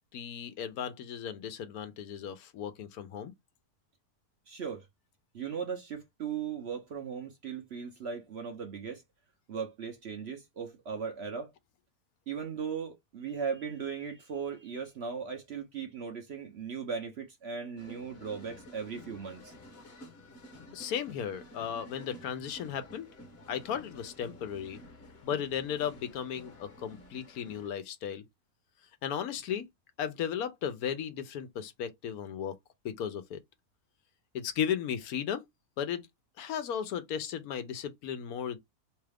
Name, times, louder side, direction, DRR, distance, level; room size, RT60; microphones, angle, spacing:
voice 1, 0.1-3.3 20.7-23.1 23.5-24.8 25.2-28.2 29.0-29.7 30.0-32.6 32.8-33.4 34.3-35.4 35.8-36.1 36.4-38.6, left 8 dB, 75° left, 1.1 m, -35 dB
voice 2, 4.5-4.8 5.3-9.0 9.5-11.5 12.3-19.5, right 6 dB, 55° right, 0.8 m, -38 dB
sound 1, 17.8-27.7, left 1 dB, 45° left, 1.2 m, -51 dB
3.1 x 2.3 x 3.3 m
omnidirectional pair, 1.6 m